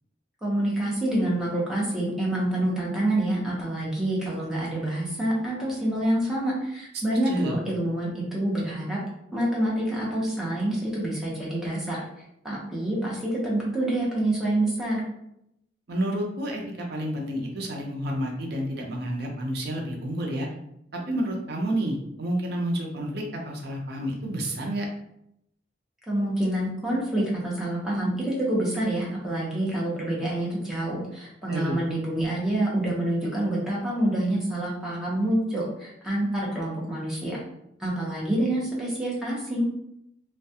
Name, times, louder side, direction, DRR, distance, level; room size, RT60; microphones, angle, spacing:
voice 1, 0.4-9.0 9.3-12.0 12.4-15.0 26.1-37.4 37.8-39.7, right 1 dB, 5° right, -6 dB, 0.7 m, -27 dB
voice 2, 7.3-7.6 15.9-20.5 20.9-24.9 31.5-31.8, right 1 dB, 60° right, 0 dB, 0.5 m, -30 dB
2.3 x 2.2 x 2.7 m, 0.79 s
head